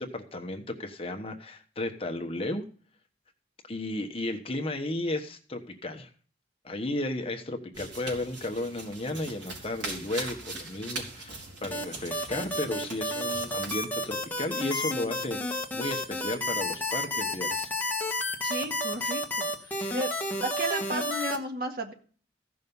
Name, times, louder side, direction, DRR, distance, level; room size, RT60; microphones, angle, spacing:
voice 1, 0.0-2.6 3.7-6.1 6.6-17.7 19.8-19.9, left 2 dB, 30° left, 5 dB, 1.2 m, -34 dB
sound 1, 7.7-13.8, right 2 dB, 80° right, 4.4 m, -41 dB
sound 2, 11.7-21.4, left 1 dB, 10° left, 1.4 m, -31 dB
voice 2, 18.4-20.1 20.4-21.9, right 1 dB, 50° right, 3 dB, 1.8 m, -33 dB
15.5 x 6.4 x 5.4 m, 0.43 s
head